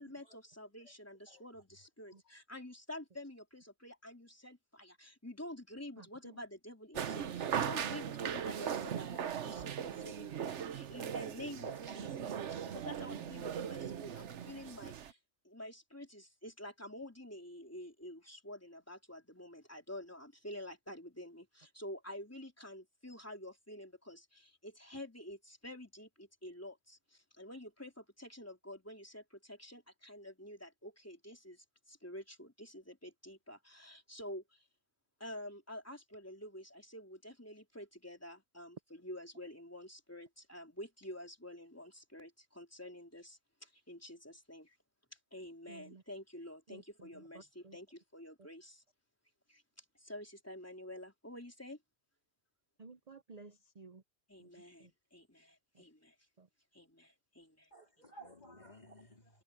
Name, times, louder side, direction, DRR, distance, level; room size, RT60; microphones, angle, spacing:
voice 1, 0.0-15.2 15.4-34.7 35.2-44.8 45.3-48.8 49.5-51.8 54.3-56.2 56.7-57.7, left 1 dB, 10° left, 3.7 m, -49 dB
voice 2, 6.0-6.4 13.3-13.5 45.7-46.0 46.7-47.8 52.8-54.0 54.4-54.5 54.8-54.9 55.7-55.8 56.4-56.5, right 3 dB, 40° right, 0.8 m, -55 dB
sound 1, 6.9-15.1, right 8 dB, 85° right, 1.2 m, -39 dB
voice 3, 57.7-59.4, right 1 dB, 40° left, 3.7 m, -56 dB
omnidirectional pair, 1.2 m